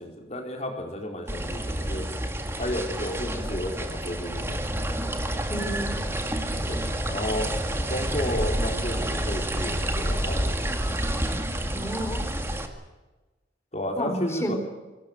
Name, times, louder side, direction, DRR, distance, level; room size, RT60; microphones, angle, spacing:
voice 1, 0.0-2.1 2.6-4.7 6.6-7.5 7.9-10.5 13.7-14.5, left 1 dB, 40° left, 2 dB, 4.2 m, -32 dB
sound 1, 1.3-12.7, right 1 dB, 15° right, 2.0 m, -29 dB
voice 2, 5.5-6.0 11.7-12.4 14.0-14.5, equal, 15° left, 5 dB, 4.1 m, -31 dB
25.0 x 18.0 x 8.0 m, 1.2 s
head